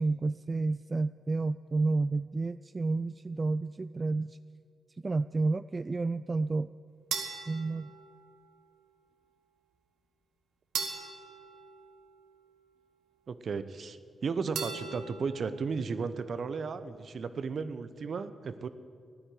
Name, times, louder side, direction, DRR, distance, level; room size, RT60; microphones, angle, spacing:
voice 1, 0.0-4.4 5.0-6.7 7.5-7.9, right 3 dB, 35° right, 14 dB, 0.3 m, -30 dB
sound 1, 7.1-8.6 10.7-12.6 14.5-15.7, right 6 dB, 80° right, 1.4 m, -39 dB
voice 2, 13.3-18.7, right 5 dB, 60° right, 12 dB, 0.8 m, -35 dB
13.0 x 9.9 x 9.2 m, 2.2 s
supercardioid pair, 45°, 0 cm